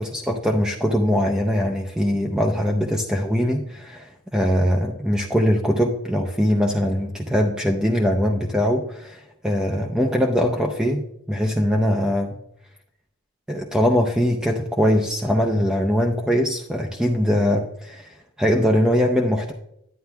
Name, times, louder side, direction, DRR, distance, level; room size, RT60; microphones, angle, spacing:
voice 1, 0.0-12.4 13.5-19.5, equal, 5° right, 0 dB, 0.6 m, -22 dB
11.5 x 9.8 x 2.3 m, 0.78 s
head